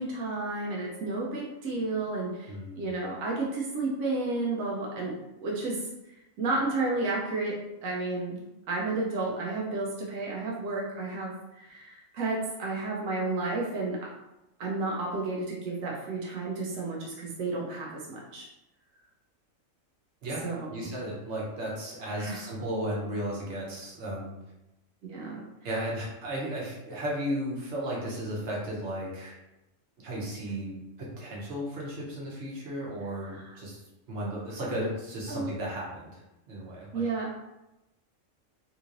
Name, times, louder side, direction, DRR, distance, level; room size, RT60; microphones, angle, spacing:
voice 1, 0.0-5.9 6.4-8.4 8.7-14.1 14.6-18.5 20.4-20.9 22.1-22.4 25.1-25.4 33.3-33.5 35.3-35.5 36.9-37.3, right 3 dB, 85° right, -3 dB, 1.0 m, -32 dB
voice 2, 2.5-2.9 20.2-20.4 20.7-24.3 25.6-29.4 30.0-33.8 34.1-36.2 36.5-37.0, equal, 60° right, -4 dB, 1.2 m, -34 dB
3.6 x 3.0 x 2.5 m, 0.94 s
omnidirectional pair, 1.4 m